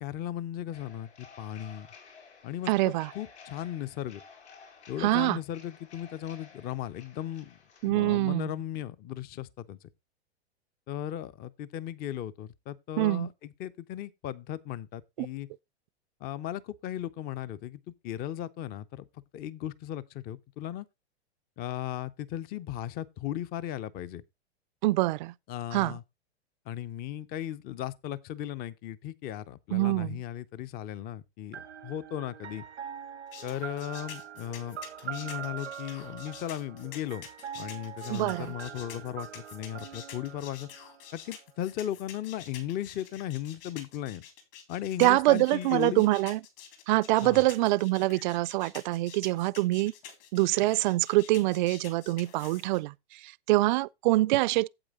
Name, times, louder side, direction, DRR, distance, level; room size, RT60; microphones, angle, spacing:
voice 1, 0.0-1.9 2.4-4.2 4.9-9.8 10.9-15.5 16.2-19.0 19.3-20.9 21.6-24.2 25.5-26.0 26.7-32.6 33.4-34.8 35.0-37.3 37.5-40.7 41.1-44.2 44.7-46.1 47.2-47.4, left 11 dB, 30° left, 0.6 m, -36 dB
sound 1, 0.7-7.9, left 5 dB, 80° left, 5.0 m, -53 dB
voice 2, 2.7-3.1 5.0-5.4 7.8-8.6 13.0-13.3 15.2-15.3 24.8-25.3 25.7-26.0 29.7-30.2 38.1-38.5 45.0-46.4 46.9-49.9 50.3-54.7, right 19 dB, 45° right, 0.4 m, -25 dB
sound 2, 31.5-41.3, right 9 dB, 90° right, 0.9 m, -43 dB
sound 3, 33.3-52.8, left 9 dB, 55° left, 3.8 m, -48 dB
8.8 x 8.0 x 3.6 m
hypercardioid pair, 115°, 33 cm